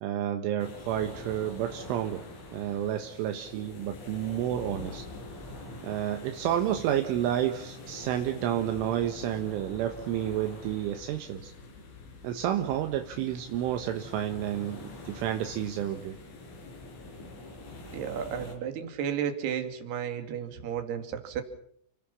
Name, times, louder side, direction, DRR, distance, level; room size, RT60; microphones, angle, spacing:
voice 1, 0.0-2.3 2.5-5.0 5.8-11.5 12.2-16.2, right 11 dB, 75° right, 6 dB, 3.7 m, -30 dB
sound 1, 0.6-18.6, left 2 dB, 65° left, 7.9 m, -45 dB
voice 2, 17.9-21.4, right 8 dB, 55° right, 7 dB, 4.2 m, -33 dB
30.0 x 18.5 x 7.2 m, 0.67 s
omnidirectional pair, 5.9 m